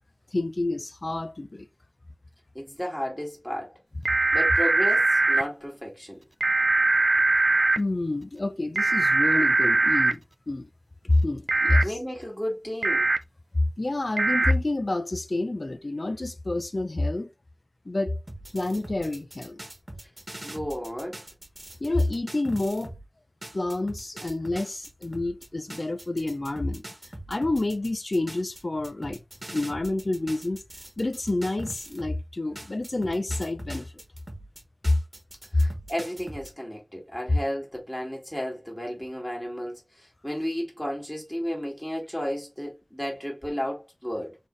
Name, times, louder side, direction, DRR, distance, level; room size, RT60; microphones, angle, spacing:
voice 1, 0.3-1.7 7.8-10.2 10.5-10.7 11.0-12.0 13.8-17.3 17.9-18.2 18.5-19.6 21.8-22.9 23.5-26.8 27.3-29.2 29.5-30.6 31.0-33.9 34.8-35.0 35.5-35.6, left 2 dB, 55° left, 0.6 m, -28 dB
voice 2, 2.5-3.8 4.3-6.2 11.8-13.1 20.4-21.2 35.5-44.4, equal, 15° left, 2.2 m, -33 dB
sound 1, 4.1-5.4 6.4-7.8 8.8-10.1 11.5-11.8 12.8-13.2 14.2-14.5, right 2 dB, 70° right, 0.5 m, -21 dB
sound 2, 18.3-23.0 23.4-32.2 32.6-36.5, right 1 dB, 35° right, 1.3 m, -42 dB
4.3 x 3.6 x 3.2 m
wide cardioid pair, 45°, 0 cm